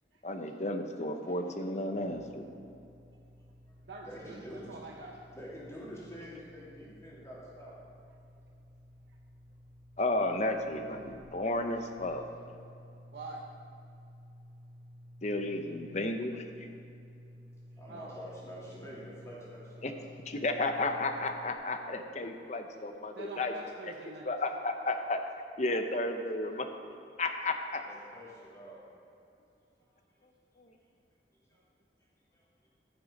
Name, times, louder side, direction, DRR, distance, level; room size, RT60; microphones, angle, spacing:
voice 1, 0.2-2.5 10.0-12.3 15.2-16.7 19.8-19.9 20.3-23.5 24.2-25.2 25.6-26.7 27.2-27.8 30.6-30.7, left 2 dB, 40° left, 6 dB, 0.7 m, -33 dB
sound 1, 1.9-21.5, equal, 65° right, 2.4 m, -54 dB
voice 2, 3.3-3.7 4.0-7.9 17.8-20.1 27.8-28.8 31.5-31.6 32.3-32.7, equal, 15° left, -7 dB, 2.7 m, -47 dB
voice 3, 3.9-5.2 13.1-13.4 17.9-18.1 23.2-24.3, right 3 dB, 80° right, -1 dB, 0.8 m, -45 dB
14.5 x 6.2 x 5.2 m, 2.6 s
head